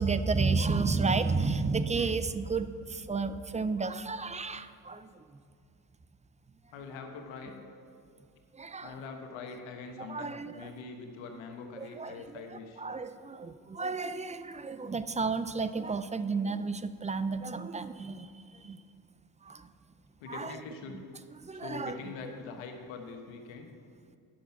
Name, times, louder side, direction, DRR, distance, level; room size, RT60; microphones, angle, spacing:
voice 1, 0.0-5.2 8.5-8.9 10.0-10.7 11.8-18.8 19.4-19.7 20.3-20.6 20.9-21.0 21.3-22.0 22.2-22.3, right 4 dB, 15° right, 12 dB, 0.4 m, -32 dB
voice 2, 6.7-7.6 8.8-12.8 20.2-21.0 21.5-23.7, left 4 dB, 80° left, 4 dB, 1.3 m, -43 dB
10.5 x 6.7 x 5.8 m, 2.4 s
supercardioid pair, 70°, 45 cm